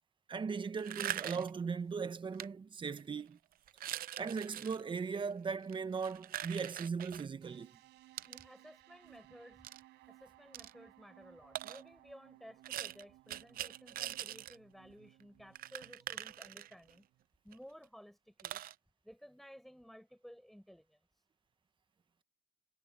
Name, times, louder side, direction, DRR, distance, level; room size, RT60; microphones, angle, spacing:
voice 1, 0.3-3.4 4.2-7.7, right 5 dB, 30° right, 1.2 m, -38 dB
sound 1, 0.8-1.6 2.3-2.5 3.0-3.2 3.7-4.8 5.6-7.3 8.2-8.4 9.6-9.8 10.5-10.7 11.6-11.8 12.6-14.6 14.9-15.0 15.2-15.3 15.6-17.0 17.5-17.6 17.8-17.9 18.4-18.7, right 12 dB, 60° right, 0.7 m, -42 dB
sound 2, 7.4-17.2, right 18 dB, 85° right, 7.6 m, -62 dB
voice 2, 8.2-9.7 10.1-17.1 17.4-18.6 19.0-21.2, equal, ahead, 5.3 m, -56 dB
cardioid pair, 110°, 17 cm